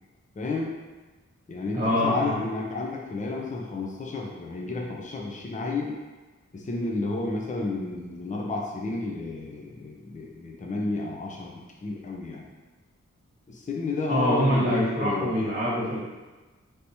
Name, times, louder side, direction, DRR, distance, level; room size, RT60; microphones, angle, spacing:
voice 1, 0.4-0.7 1.5-6.0 6.5-12.4 13.5-15.4, left 3 dB, 25° left, -1 dB, 0.5 m, -31 dB
voice 2, 1.7-2.4 14.1-16.0, equal, 30° right, -8 dB, 1.3 m, -25 dB
3.4 x 2.8 x 2.8 m, 1.2 s
wide cardioid pair, 95°, 29 cm